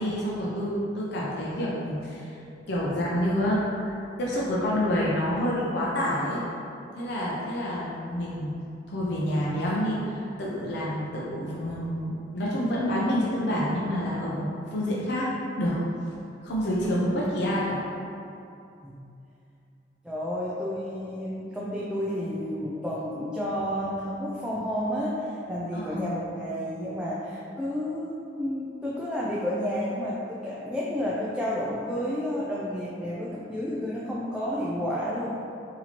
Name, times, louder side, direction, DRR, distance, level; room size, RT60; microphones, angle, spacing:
voice 1, 0.0-2.4 2.7-6.4 6.9-8.5 8.9-15.3 15.6-15.8 16.4-17.8 25.7-26.1, equal, 65° left, -6 dB, 0.6 m, -28 dB
voice 2, 16.8-17.6 18.8-19.0 20.0-35.3, equal, 5° right, -8 dB, 0.3 m, -31 dB
4.1 x 2.8 x 2.9 m, 2.6 s
head